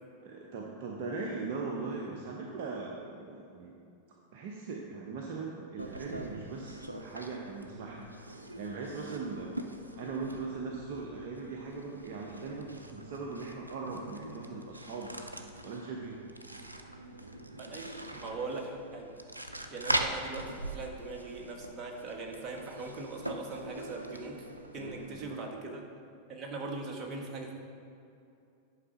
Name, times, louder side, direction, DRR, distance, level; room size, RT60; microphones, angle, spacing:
voice 1, 0.2-3.7 4.3-9.6 9.9-15.1 15.6-16.2 24.8-25.4, right 4 dB, 50° right, -1 dB, 1.0 m, -40 dB
sound 1, 5.8-25.2, right 1 dB, 85° right, 0.6 m, -42 dB
voice 2, 17.6-19.1 19.7-24.5 24.7-25.8 26.3-27.5, right 3 dB, 30° right, 0 dB, 1.5 m, -40 dB
10.0 x 5.0 x 5.7 m, 2.6 s
figure-of-eight pair, 90°, 0 cm